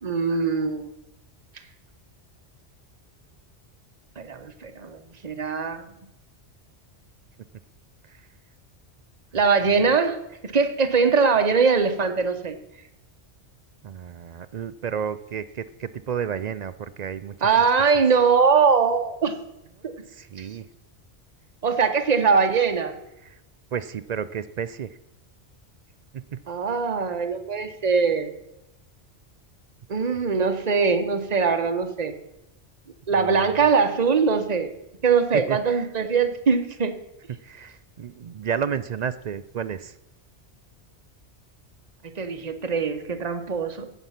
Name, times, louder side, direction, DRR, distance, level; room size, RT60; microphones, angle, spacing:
voice 1, 0.0-0.9 4.2-5.9 9.3-12.6 17.4-19.4 19.8-20.0 21.6-23.0 26.5-28.3 29.9-32.1 33.1-34.7 35.0-37.0 42.2-43.9, right 5 dB, 40° right, 8 dB, 1.1 m, -22 dB
voice 2, 13.8-17.5 20.1-20.7 23.2-23.4 23.7-25.0 26.1-26.4 33.1-33.7 35.3-35.9 37.3-40.0, right 7 dB, 60° right, 14 dB, 0.4 m, -32 dB
16.5 x 6.8 x 5.7 m, 0.89 s
omnidirectional pair, 1.2 m